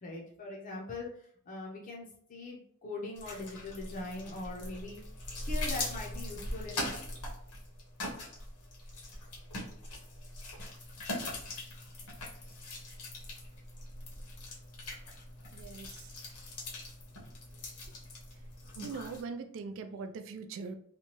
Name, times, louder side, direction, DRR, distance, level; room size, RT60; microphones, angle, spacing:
voice 1, 0.0-5.0 5.4-6.9, left 2 dB, 35° left, -1 dB, 0.5 m, -41 dB
sound 1, 3.2-19.2, left 1 dB, 80° left, 1.0 m, -41 dB
voice 2, 15.5-16.1 18.8-20.7, right 4 dB, 60° right, 8 dB, 0.3 m, -41 dB
2.9 x 2.2 x 3.0 m, 0.62 s
head